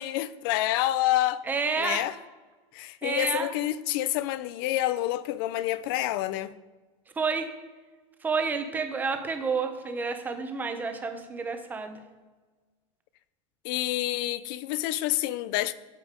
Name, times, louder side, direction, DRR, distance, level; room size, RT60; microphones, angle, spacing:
voice 1, 0.0-1.4 1.8-2.1 2.7-6.5 13.6-15.7, left 14 dB, 45° left, 0.4 m, -28 dB
voice 2, 1.4-2.1 3.0-3.5 7.2-7.5 8.2-12.0, right 5 dB, 10° right, 0.8 m, -30 dB
9.0 x 7.0 x 5.1 m
supercardioid pair, 160°, 17 cm